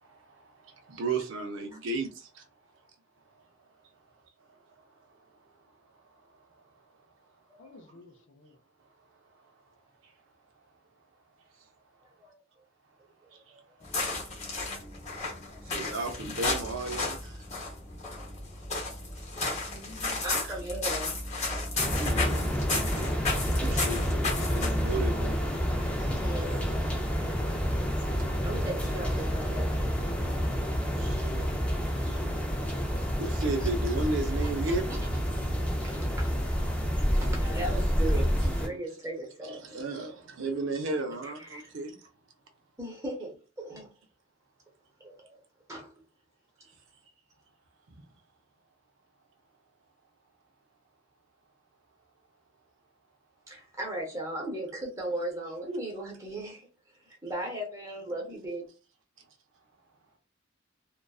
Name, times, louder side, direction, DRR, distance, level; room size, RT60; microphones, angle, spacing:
voice 1, 0.0-2.5 10.0-10.1 13.3-13.4 15.6-17.4 21.9-22.4 22.7-25.4 26.0-26.3 30.9-35.0 37.5-37.6 38.4-38.5 39.4-42.0, right 3 dB, 70° right, 0.5 m, -35 dB
voice 2, 7.6-8.6 19.7-20.2 58.1-58.5, left 2 dB, 65° left, 0.5 m, -52 dB
voice 3, 13.3-14.1 15.5-15.6 17.0-17.1 20.2-21.2 26.1-27.0 28.4-29.7 33.6-33.7 34.7-34.8 35.8-36.3 37.0-39.9 41.5-41.6 42.8-43.9 45.0-45.4 45.7-45.9 53.5-56.6 57.0-58.6, right 1 dB, 15° right, 0.7 m, -37 dB
sound 1, 13.8-25.0, left 3 dB, 35° left, 0.8 m, -33 dB
sound 2, 21.8-38.7, equal, 5° left, 0.4 m, -29 dB
2.5 x 2.2 x 2.3 m
head